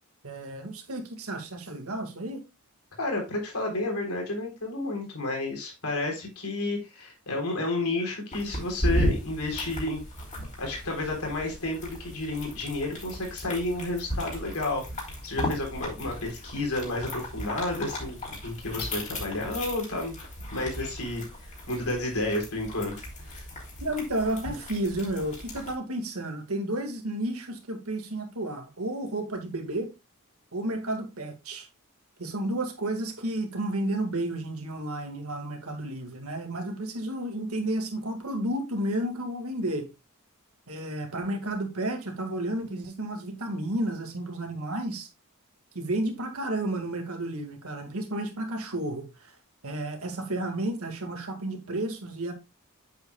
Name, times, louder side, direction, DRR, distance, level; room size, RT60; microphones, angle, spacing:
voice 1, 0.2-2.4 23.8-29.9 30.5-31.7 32.2-39.9 40.7-45.1 45.7-49.3 49.6-52.3, right 1 dB, 75° right, 2.1 m, -32 dB
voice 2, 3.0-10.0 10.6-21.3 21.7-23.5, left 2 dB, 80° left, 3.8 m, -31 dB
sound 1, 8.3-25.8, equal, 35° left, 3.3 m, -35 dB
8.3 x 8.0 x 2.3 m
head